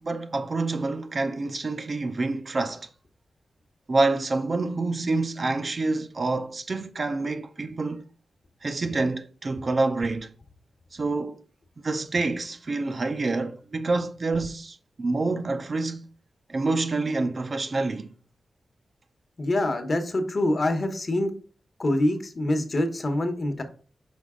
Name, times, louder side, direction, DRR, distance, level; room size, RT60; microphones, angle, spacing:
voice 1, 0.0-2.9 3.9-8.0 8.6-10.3 10.9-11.4 11.8-16.1 16.5-18.1, right 3 dB, 40° right, 0.5 m, -27 dB
voice 2, 19.4-21.3 21.8-23.6, left 1 dB, 40° left, 1.0 m, -25 dB
5.3 x 5.1 x 3.7 m
wide cardioid pair, 130°, 0 cm